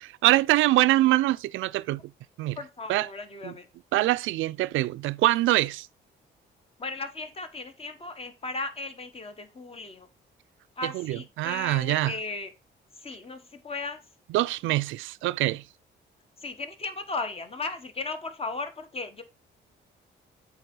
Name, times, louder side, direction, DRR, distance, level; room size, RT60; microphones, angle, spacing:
voice 1, 0.0-2.0 2.4-2.6 2.9-3.1 3.4-3.5 3.9-5.9 10.8-12.2 14.3-15.6, right 17 dB, 85° right, 0.4 m, -24 dB
voice 2, 2.6-3.7 6.8-10.1 10.8-12.5 13.0-14.0 16.4-19.2, left 3 dB, 30° left, 1.4 m, -36 dB
8.0 x 3.6 x 5.5 m
cardioid pair, 90°, 20 cm